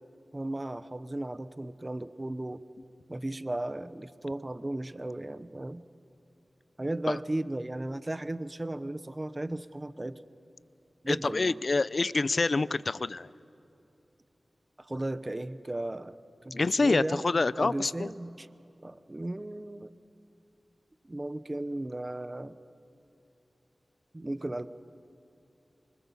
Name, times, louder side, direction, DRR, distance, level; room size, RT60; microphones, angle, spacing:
voice 1, 0.3-2.6 3.1-5.8 6.8-10.2 11.0-11.6 14.8-16.2 16.4-17.3 17.6-18.5 18.8-19.9 21.0-22.5 24.1-24.7, right 1 dB, 25° right, 13 dB, 0.8 m, -35 dB
voice 2, 11.1-13.3 16.5-18.1, left 3 dB, 55° left, 18 dB, 0.5 m, -27 dB
27.0 x 24.5 x 7.2 m, 2.9 s
wide cardioid pair, 85°, 0 cm